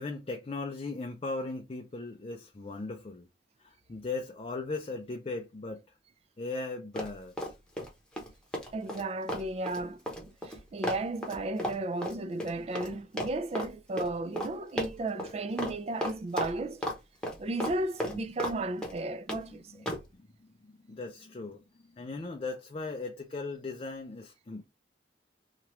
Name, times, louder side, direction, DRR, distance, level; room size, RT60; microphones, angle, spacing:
voice 1, 0.0-3.3 3.6-5.8 6.4-7.5 19.9-20.0 20.4-21.6 21.9-24.7, left 3 dB, 30° left, 0.4 m, -38 dB
Run, 6.9-7.9 8.2-12.9 13.2-13.7 14.0-14.1 14.4-14.5 14.8-15.3 15.6-15.7 16.0-17.0 17.2-18.6 18.8-19.4 19.9-20.0, left 1 dB, 5° left, 0.8 m, -34 dB
voice 2, 8.7-16.8 17.4-19.9, right 2 dB, 35° right, 0.3 m, -34 dB
2.9 x 2.4 x 3.1 m
head